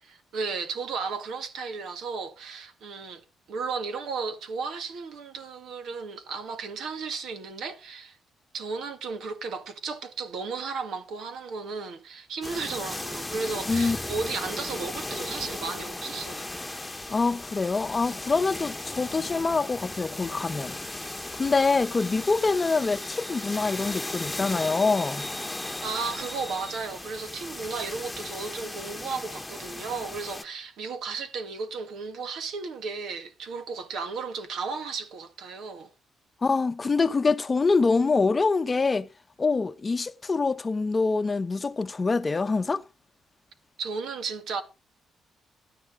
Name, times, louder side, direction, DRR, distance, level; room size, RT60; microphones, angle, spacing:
voice 1, 0.0-3.2 3.5-8.2 8.5-16.5 25.8-35.9 43.8-44.6, right 4 dB, 75° right, 2.0 m, -34 dB
sound 1, 12.4-30.4, left 2 dB, 10° left, 1.2 m, -36 dB
sound 2, 13.6-15.5 18.3-20.3, equal, 30° right, 4.1 m, -46 dB
voice 2, 17.1-20.8 21.3-25.2 36.4-39.1 39.4-42.8, left 4 dB, 30° left, 0.8 m, -25 dB
sound 3, 19.8-26.8, equal, 10° right, 2.1 m, -45 dB
12.0 x 9.7 x 4.8 m
cardioid pair, 90°, 0 cm